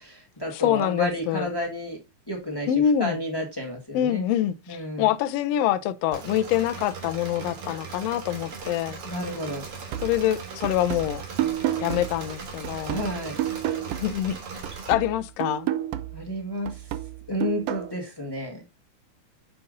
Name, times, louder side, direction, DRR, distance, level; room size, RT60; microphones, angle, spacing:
voice 1, 0.0-2.0 2.3-2.7 3.0-4.2 4.7-5.1 9.0-9.6 12.8-13.5 16.1-16.9 17.3-18.6, equal, 30° left, 0.4 m, -31 dB
voice 2, 0.5-1.5 2.7-3.2 3.9-9.0 10.0-11.2 11.8-13.0 14.0-14.4 14.9-15.7, left 11 dB, 75° left, 1.5 m, -25 dB
Engine / Mechanisms, 6.1-14.9, right 5 dB, 50° right, 2.3 m, -38 dB
sound 1, 9.9-14.4 14.6-17.9, right 13 dB, 90° right, 1.3 m, -31 dB
7.0 x 5.3 x 3.8 m
omnidirectional pair, 3.4 m